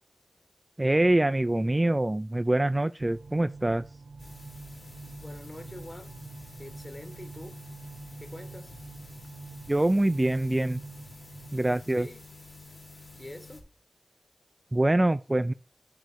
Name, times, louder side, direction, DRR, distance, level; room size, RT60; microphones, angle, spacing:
voice 1, 0.8-3.8 9.7-10.8 11.5-12.1 14.7-15.5, right 1 dB, 20° right, 0.3 m, -24 dB
sound 1, 3.0-11.5, right 4 dB, 70° right, 1.0 m, -45 dB
sound 2, 4.2-13.6, left 3 dB, 45° left, 2.2 m, -49 dB
voice 2, 5.2-6.1 6.6-7.6 8.2-8.7 12.0-12.2 13.1-13.7, left 1 dB, 20° left, 1.5 m, -44 dB
9.2 x 3.1 x 6.3 m
wide cardioid pair, 70°, 0 cm